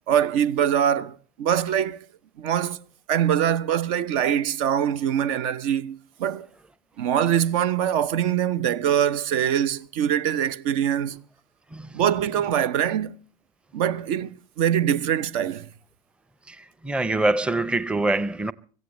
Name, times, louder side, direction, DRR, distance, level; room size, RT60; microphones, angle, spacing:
voice 1, 0.1-2.0 2.4-2.8 3.1-6.5 7.0-11.2 11.9-13.2 13.7-15.7, right 9 dB, 55° right, 0.8 m, -23 dB
voice 2, 11.7-12.0 16.5-18.5, right 2 dB, 5° right, 0.7 m, -25 dB
25.0 x 16.0 x 3.1 m
figure-of-eight pair, 70°, 21 cm